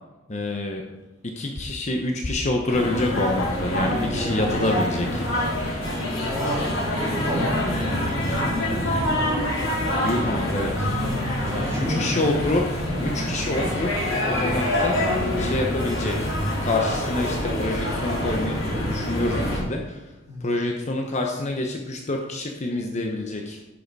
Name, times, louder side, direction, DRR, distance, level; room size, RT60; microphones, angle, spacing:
voice 1, 0.3-0.9 1.2-5.3 10.0-10.9 11.5-12.7 13.0-15.0 15.4-16.3 16.6-20.1 20.4-23.6, left 2 dB, 35° left, 2 dB, 0.9 m, -27 dB
sound 1, 2.7-19.6, left 1 dB, 85° left, 3.8 m, -25 dB
voice 2, 3.9-4.6 6.1-9.3 11.4-12.4 20.2-20.6, equal, 15° right, -6 dB, 3.6 m, -33 dB
10.5 x 6.5 x 4.7 m, 1.1 s
head